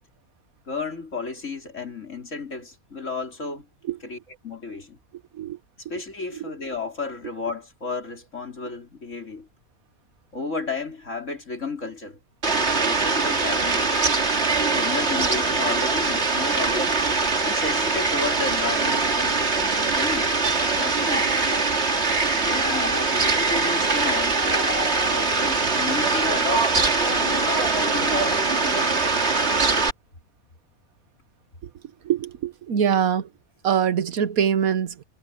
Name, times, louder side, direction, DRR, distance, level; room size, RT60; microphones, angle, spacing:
voice 1, 0.7-3.7 4.0-5.0 5.8-9.5 10.3-12.2 12.8-14.0 14.6-17.0 17.4-20.3 20.8-21.4 22.3-24.8 25.1-26.8 27.1-29.1, left 4 dB, 55° left, 4.4 m, -33 dB
Fowl, 12.4-29.9, right 3 dB, 50° right, 2.4 m, -22 dB
voice 2, 32.0-33.3 33.6-35.0, right 8 dB, 75° right, 1.4 m, -23 dB
omnidirectional pair, 1.5 m